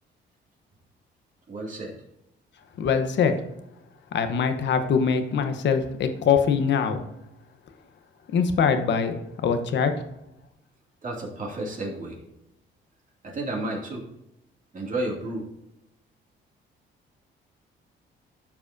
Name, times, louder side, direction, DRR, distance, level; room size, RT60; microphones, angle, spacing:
voice 1, 1.5-2.0 11.0-12.2 13.2-14.1 14.7-15.5, right 2 dB, 40° right, -2 dB, 2.4 m, -32 dB
voice 2, 2.8-3.3 4.1-7.0 8.3-9.9, left 6 dB, 65° left, 8 dB, 1.0 m, -23 dB
12.5 x 4.8 x 2.7 m, 0.87 s
cardioid pair, 90°, 20 cm